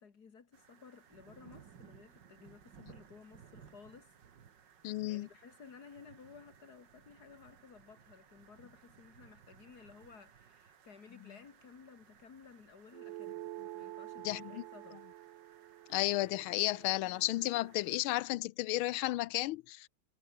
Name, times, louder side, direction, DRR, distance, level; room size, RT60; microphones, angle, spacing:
voice 1, 0.0-4.1 5.1-13.4 13.7-15.0, left 5 dB, 50° left, 2.3 m, -56 dB
sound 1, 0.5-18.3, right 7 dB, 60° right, 2.2 m, -61 dB
voice 2, 4.8-5.3 14.2-14.6 15.9-19.9, left 17 dB, 80° left, 1.5 m, -33 dB
sound 2, 12.9-17.7, right 15 dB, 75° right, 1.4 m, -48 dB
omnidirectional pair, 2.3 m